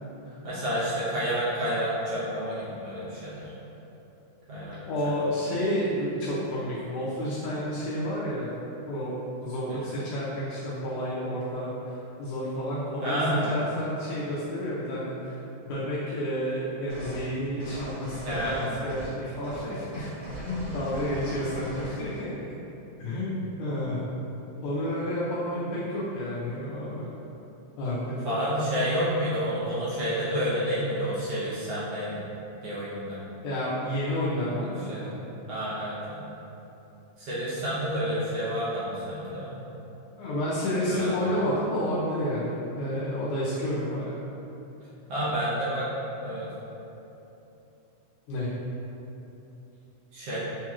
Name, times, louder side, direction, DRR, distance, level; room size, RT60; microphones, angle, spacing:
voice 1, 0.4-3.5 4.5-4.8 9.7-9.8 13.0-13.6 18.2-18.8 20.1-20.3 28.2-32.2 32.6-33.2 34.9-35.2 35.5-36.2 37.2-39.6 40.9-41.4 45.1-45.9 46.2-46.5 50.1-50.4, equal, 65° right, -10 dB, 1.5 m, -29 dB
voice 2, 4.8-8.5 8.9-9.2 9.4-22.3 23.0-24.0 24.6-27.1 27.8-28.2 33.4-35.1 40.2-44.2 48.3-48.5, equal, 85° left, -9 dB, 2.1 m, -30 dB
sound 1, 16.9-17.3 17.6-19.2 19.4-19.6 19.9-22.0, right 1 dB, 90° right, 3.1 m, -39 dB
6.5 x 2.9 x 2.3 m, 3.0 s
omnidirectional pair, 3.5 m